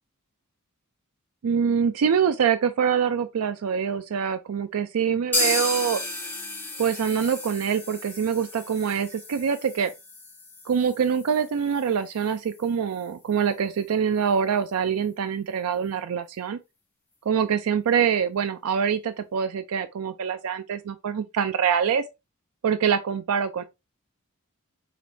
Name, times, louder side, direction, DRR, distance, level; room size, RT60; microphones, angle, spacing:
voice 1, 1.4-6.0 6.8-9.9 10.7-16.6 17.3-22.0 22.6-23.6, right 7 dB, 70° right, 0.4 m, -25 dB
sound 1, 5.3-13.1 13.4-13.5 13.8-13.9 14.3-14.4, left 2 dB, 10° left, 1.0 m, -33 dB
5.0 x 2.9 x 2.7 m
head